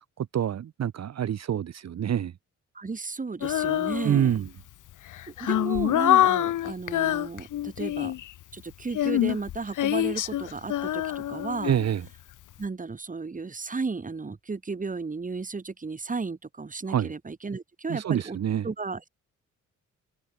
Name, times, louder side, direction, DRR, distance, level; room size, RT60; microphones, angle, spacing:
voice 1, 0.0-2.3 4.0-4.5 11.6-12.0 16.9-17.1 17.9-18.7, right 9 dB, 55° right, 1.2 m, -26 dB
voice 2, 2.7-4.4 5.3-8.1 8.5-11.8 12.6-18.4 18.6-19.1, right 4 dB, 25° right, 2.4 m, -34 dB
Female singing, 3.4-4.5 5.1-8.3 8.9-12.1, left 12 dB, 80° left, 1.0 m, -26 dB
cardioid pair, 105°, 31 cm